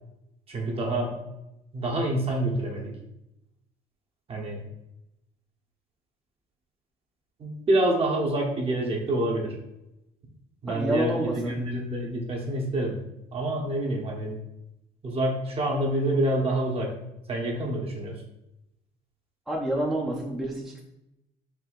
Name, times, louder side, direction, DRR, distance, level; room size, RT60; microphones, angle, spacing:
voice 1, 0.5-1.2 1.7-2.9 4.3-4.6 7.4-9.6 10.6-13.0 13.3-14.3 15.0-16.9 17.3-18.2, right 1 dB, 35° right, 0 dB, 0.9 m, -27 dB
voice 2, 10.7-11.6 19.5-20.8, right 1 dB, ahead, -4 dB, 0.5 m, -28 dB
4.6 x 2.7 x 2.4 m, 0.88 s
cardioid pair, 110°, 17 cm